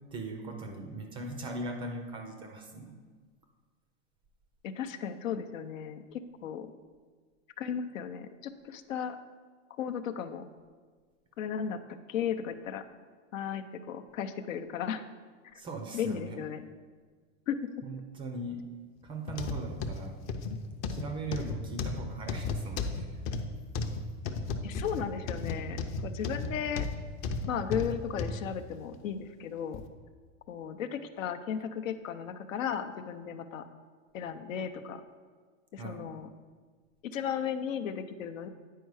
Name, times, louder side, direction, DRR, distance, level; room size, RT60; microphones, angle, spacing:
voice 1, 0.1-3.0 15.5-16.4 17.8-18.7 19.0-20.2 20.9-23.2 35.8-36.1, right 2 dB, 15° right, 4 dB, 0.3 m, -39 dB
voice 2, 4.6-6.7 7.6-9.2 9.8-10.4 11.4-12.8 13.3-15.0 15.5-15.6 15.9-16.6 17.5-17.7 24.6-26.9 27.5-29.8 30.5-33.7 34.1-35.0 35.7-36.3 37.0-38.5, left 8 dB, 90° left, 9 dB, 0.7 m, -35 dB
sound 1, 19.3-28.4 28.9-29.1 29.7-29.8, left 4 dB, 35° left, 0.5 m, -34 dB
9.3 x 4.6 x 4.7 m, 1.5 s
supercardioid pair, 140°, 38 cm